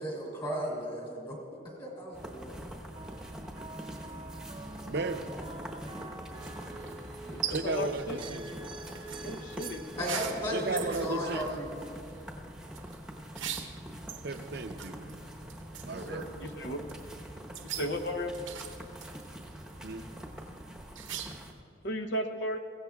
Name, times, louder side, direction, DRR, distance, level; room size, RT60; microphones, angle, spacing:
voice 1, 0.0-1.4 1.8-2.6 10.0-11.7 15.9-16.2, equal, 25° left, -3 dB, 2.7 m, -35 dB
sound 1, 2.1-21.5, equal, 5° right, 1.0 m, -44 dB
sound 2, 2.9-10.2, right 2 dB, 25° right, 0.8 m, -45 dB
voice 2, 4.8-5.3 7.5-8.6 10.5-11.6 14.2-15.2 15.8-16.3 19.8-20.1, right 3 dB, 55° right, 8 dB, 0.7 m, -35 dB
sound 3, 6.4-21.6, right 9 dB, 85° right, 0.9 m, -44 dB
voice 3, 7.3-8.2 9.2-9.8 16.6-16.8 17.8-18.3 21.8-22.6, left 1 dB, 60° left, 4 dB, 0.7 m, -34 dB
22.0 x 16.0 x 2.3 m, 2.5 s
head